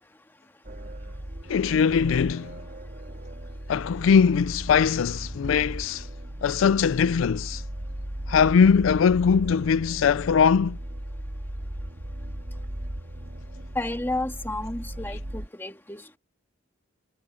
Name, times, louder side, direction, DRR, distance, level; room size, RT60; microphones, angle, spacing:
sound 1, 0.6-15.5, right 1 dB, 50° right, 1.8 m, -37 dB
voice 1, 1.5-2.6 3.7-6.1 6.4-7.6 8.3-10.8, left 6 dB, 85° left, 0.4 m, -21 dB
voice 2, 13.8-16.2, left 2 dB, 10° left, 1.7 m, -32 dB
head